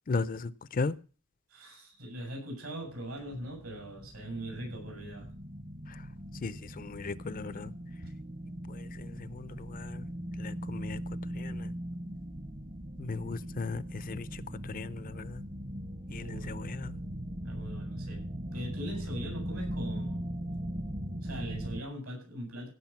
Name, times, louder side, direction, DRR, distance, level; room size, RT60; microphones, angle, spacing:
voice 1, 0.1-1.0 5.9-6.0 6.4-7.7 8.7-10.1 10.4-11.0 11.3-11.7 13.0-15.4 16.1-17.0, left 4 dB, 40° left, 0.5 m, -37 dB
voice 2, 1.5-5.3 16.2-16.5 17.4-18.2 18.5-20.2 21.2-22.7, right 1 dB, 80° right, 7.8 m, -41 dB
sound 1, 2.8-21.8, equal, 40° right, 1.0 m, -39 dB
16.5 x 6.5 x 5.7 m
head